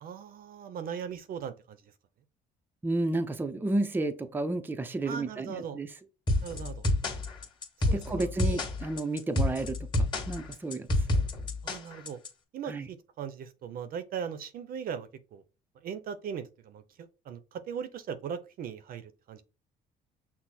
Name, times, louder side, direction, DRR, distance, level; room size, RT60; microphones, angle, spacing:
voice 1, 0.0-1.8 5.1-5.8 6.4-6.9 7.9-8.7 11.6-12.2 12.5-15.4 15.8-19.4, right 7 dB, 60° right, 0.7 m, -39 dB
voice 2, 2.8-5.9 7.9-10.9 12.7-12.9, right 2 dB, 10° right, 0.5 m, -31 dB
sound 1, 6.3-12.3, left 2 dB, 25° left, 1.7 m, -28 dB
6.1 x 2.1 x 4.1 m
cardioid pair, 110°, 17 cm